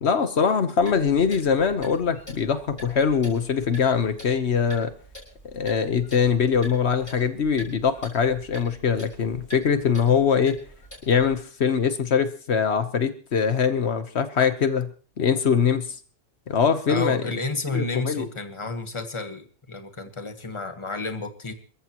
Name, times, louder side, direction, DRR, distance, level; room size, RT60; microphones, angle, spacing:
voice 1, 0.0-4.9 5.5-10.6 11.1-14.9 15.2-15.9 16.5-17.2 17.7-18.2, left 6 dB, 75° left, 10 dB, 1.4 m, -22 dB
Clock, 0.8-11.4, equal, 45° left, 6.3 m, -46 dB
voice 2, 16.9-21.5, left 3 dB, 25° left, 7 dB, 1.5 m, -31 dB
29.0 x 14.5 x 3.0 m, 0.39 s
omnidirectional pair, 1.1 m